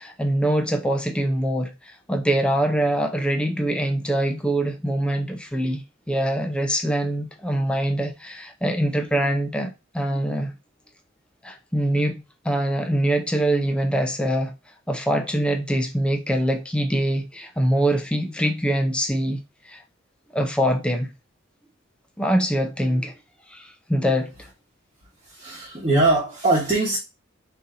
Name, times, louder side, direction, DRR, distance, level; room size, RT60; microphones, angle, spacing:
voice 1, 0.0-10.5 11.4-14.5 14.9-19.4 19.6-19.8 20.3-21.1 22.2-23.1 23.5-24.3, right 1 dB, 5° left, 0.4 m, -24 dB
voice 2, 25.2-27.0, right 2 dB, 25° right, 1.1 m, -21 dB
4.0 x 2.7 x 3.8 m
head